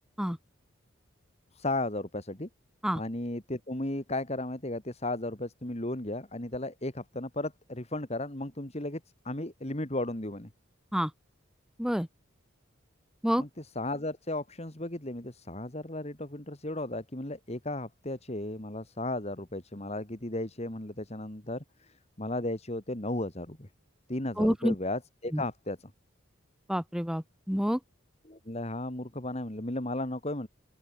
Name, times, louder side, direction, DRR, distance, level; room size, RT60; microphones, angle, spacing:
voice 1, 1.5-2.5 2.9-10.5 13.4-23.7 24.1-25.9 28.3-30.5, left 1 dB, 30° left, 2.4 m, -35 dB
voice 2, 24.4-24.7 25.3-25.4 26.7-27.8, equal, 5° right, 1.4 m, -28 dB
open air
head